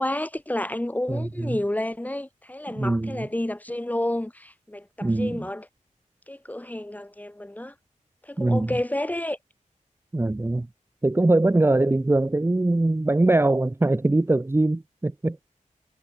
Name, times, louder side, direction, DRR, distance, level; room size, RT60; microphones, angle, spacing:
voice 1, 0.0-5.7 6.3-7.7 8.3-9.4, left 1 dB, 10° left, 2.2 m, -30 dB
voice 2, 1.1-1.6 2.7-3.3 5.0-5.5 8.4-8.8 10.1-10.7 11.0-15.4, right 2 dB, 20° right, 0.8 m, -22 dB
wide cardioid pair, 85°, 13 cm